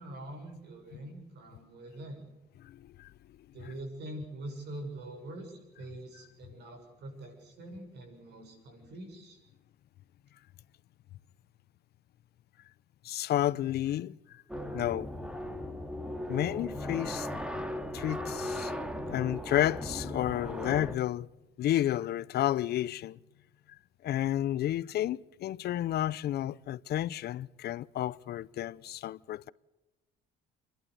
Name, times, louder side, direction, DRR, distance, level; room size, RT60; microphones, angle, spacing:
voice 1, 0.0-2.2 3.5-9.4, right 1 dB, 70° right, 7.0 m, -44 dB
voice 2, 2.6-3.1 3.6-3.8 13.0-14.4 14.7-15.1 16.3-17.3 17.9-18.7 19.1-21.3 21.6-23.2 24.0-29.5, left 12 dB, 65° left, 0.7 m, -31 dB
sound 1, 14.5-20.9, left 1 dB, 5° right, 2.1 m, -37 dB
29.0 x 11.5 x 8.1 m
cardioid pair, 95°, 18 cm